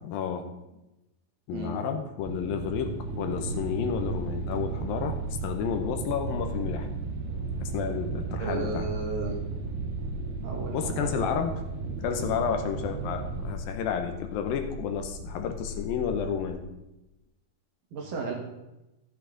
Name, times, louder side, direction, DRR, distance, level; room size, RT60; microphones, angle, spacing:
voice 1, 0.0-0.4 1.5-6.9 7.6-8.8 10.7-11.5 12.0-16.6, left 7 dB, 80° left, 6 dB, 2.5 m, -31 dB
voice 2, 1.5-1.8 8.4-9.4 10.4-11.3 17.9-18.3, right 3 dB, 65° right, 0 dB, 3.1 m, -34 dB
sound 1, 2.2-13.5, right 5 dB, 80° right, 3.1 m, -35 dB
sound 2, 3.4-16.5, left 5 dB, 60° left, 2.2 m, -41 dB
12.5 x 8.4 x 3.9 m, 0.96 s
omnidirectional pair, 4.4 m